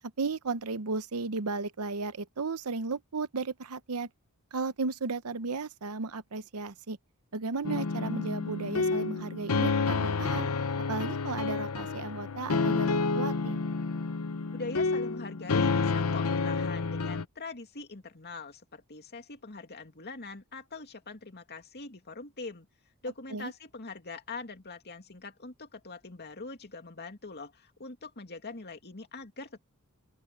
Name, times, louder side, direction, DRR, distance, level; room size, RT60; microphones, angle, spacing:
voice 1, 0.2-4.1 4.5-7.0 7.3-10.5 10.9-13.6 23.3-23.5, right 4 dB, 85° right, 0.8 m, -34 dB
sound 1, 7.6-17.2, left 4 dB, 75° left, 0.8 m, -29 dB
voice 2, 14.5-22.7 23.0-29.6, left 3 dB, 50° left, 2.5 m, -43 dB
open air
head